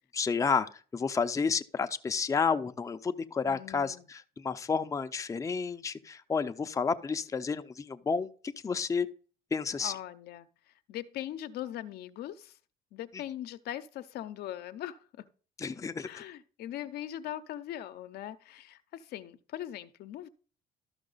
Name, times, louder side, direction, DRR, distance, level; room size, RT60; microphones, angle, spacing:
voice 1, 0.1-9.1 9.5-9.9 15.6-16.2, left 5 dB, 20° left, 0.5 m, -31 dB
voice 2, 3.5-4.1 9.7-12.6 12.9-15.3 16.0-20.3, left 12 dB, 70° left, 0.6 m, -41 dB
12.5 x 5.8 x 4.0 m
cardioid pair, 110°, 17 cm